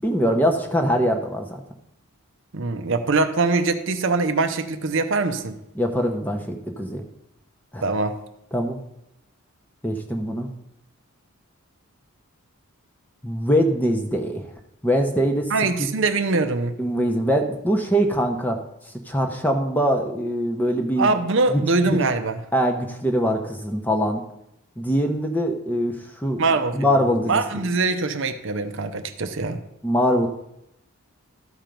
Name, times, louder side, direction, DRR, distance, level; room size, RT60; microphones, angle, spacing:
voice 1, 0.0-1.6 5.7-7.0 7.7-7.8 8.5-8.8 9.8-10.5 13.2-14.5 14.8-15.5 15.8-15.9 16.8-18.6 19.1-21.1 21.5-22.0 22.5-24.2 24.8-26.4 26.7-27.4 29.8-30.3, equal, 10° left, 3 dB, 0.8 m, -23 dB
voice 2, 2.5-5.6 7.8-8.1 15.5-16.8 21.0-22.4 26.4-29.6, right 3 dB, 55° right, 8 dB, 0.6 m, -23 dB
13.0 x 4.4 x 5.2 m, 0.79 s
head